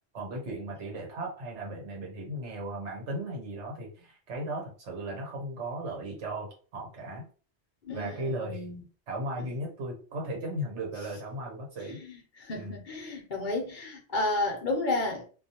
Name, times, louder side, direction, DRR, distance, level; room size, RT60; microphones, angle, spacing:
voice 1, 0.1-7.2 7.9-8.7 9.1-12.0 12.6-12.7, right 1 dB, 85° right, 1.3 m, -36 dB
voice 2, 7.8-8.8 12.4-15.3, left 2 dB, 55° left, 0.7 m, -31 dB
2.4 x 2.2 x 2.8 m
omnidirectional pair, 1.2 m